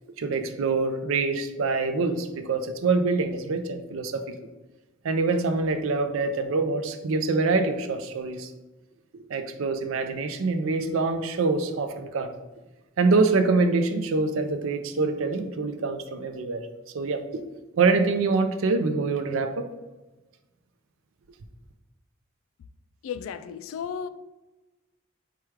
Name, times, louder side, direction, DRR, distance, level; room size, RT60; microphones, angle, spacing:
voice 1, 0.2-4.2 5.0-8.5 9.3-12.3 13.0-16.6 16.9-17.2 17.7-19.7, right 3 dB, 85° right, 0.5 m, -25 dB
voice 2, 23.0-24.1, left 7 dB, 85° left, 0.3 m, -34 dB
4.7 x 2.3 x 4.6 m
head